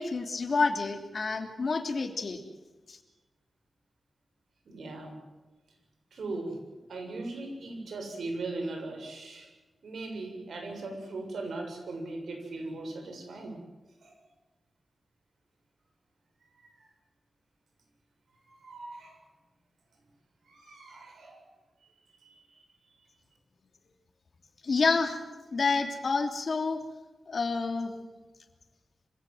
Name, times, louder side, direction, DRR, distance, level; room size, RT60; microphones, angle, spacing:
voice 1, 0.0-2.4 2.9-3.0 24.6-25.2 25.5-26.8 27.3-27.9, left 4 dB, 55° left, 6 dB, 3.0 m, -28 dB
voice 2, 4.7-5.2 6.1-6.6 6.9-9.5 9.8-13.6 14.0-14.2 16.6-16.9 18.4-19.2 20.5-21.4 22.2-22.6, right 2 dB, 80° right, 4 dB, 7.0 m, -39 dB
26.0 x 17.0 x 7.9 m, 1.2 s
wide cardioid pair, 90°, 0 cm